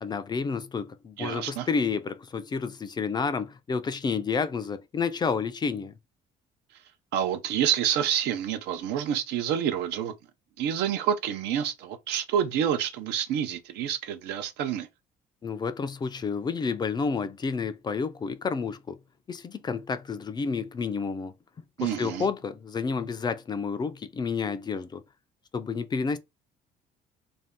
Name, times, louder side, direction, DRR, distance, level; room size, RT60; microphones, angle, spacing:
voice 1, 0.0-5.9 15.4-19.0 19.3-21.3 21.8-25.0 25.5-26.2, left 5 dB, 25° left, 0.3 m, -30 dB
voice 2, 1.2-1.7 7.1-10.1 10.6-14.9 21.8-22.3, right 9 dB, 85° right, 0.6 m, -28 dB
2.6 x 2.2 x 3.5 m
cardioid pair, 110°, 17 cm